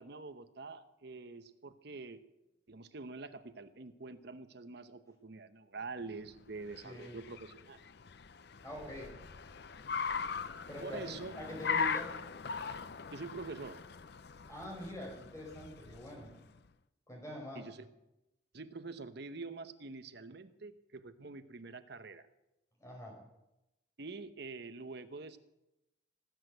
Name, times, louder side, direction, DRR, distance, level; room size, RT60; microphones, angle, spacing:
voice 1, 0.0-2.2 2.7-7.8 10.8-11.3 13.1-13.8 17.5-17.9 18.5-22.3 24.0-25.4, right 3 dB, 55° right, 11 dB, 0.9 m, -46 dB
Car, 6.3-16.6, left 5 dB, 55° left, 0.6 m, -40 dB
voice 2, 6.8-7.2 8.6-9.1 10.7-12.2 14.5-16.3 17.1-17.6 22.8-23.2, left 1 dB, 15° left, -1 dB, 5.0 m, -44 dB
18.0 x 8.2 x 7.9 m, 0.92 s
head